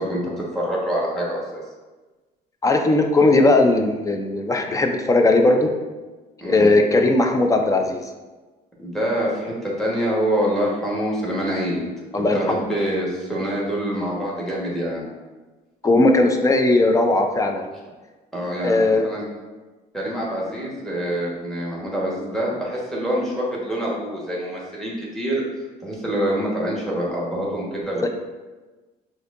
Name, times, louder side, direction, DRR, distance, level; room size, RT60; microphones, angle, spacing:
voice 1, 0.0-1.4 6.4-6.7 8.8-11.8 12.3-15.0 18.3-19.3 19.9-25.4 25.8-28.1, equal, ahead, -5 dB, 1.3 m, -25 dB
voice 2, 2.6-5.7 6.4-8.1 12.1-12.6 15.8-17.7 18.6-19.1 28.0-28.1, left 2 dB, 20° left, 4 dB, 0.4 m, -18 dB
6.1 x 2.7 x 2.5 m, 1.2 s
cardioid pair, 110°, 17 cm